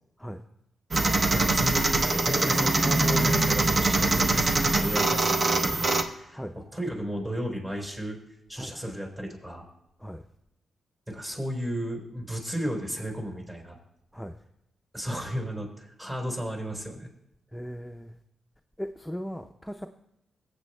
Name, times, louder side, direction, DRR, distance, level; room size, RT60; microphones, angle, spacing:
sound 1, 0.9-6.0, right 2 dB, 45° right, 0.8 m, -23 dB
voice 1, 1.3-8.2 8.5-9.7 11.1-13.8 14.9-17.1, equal, 25° right, 0 dB, 3.8 m, -34 dB
voice 2, 17.5-18.1 18.8-19.9, equal, 5° left, 5 dB, 0.5 m, -37 dB
22.0 x 7.8 x 2.2 m, 0.83 s
supercardioid pair, 50°, 0 cm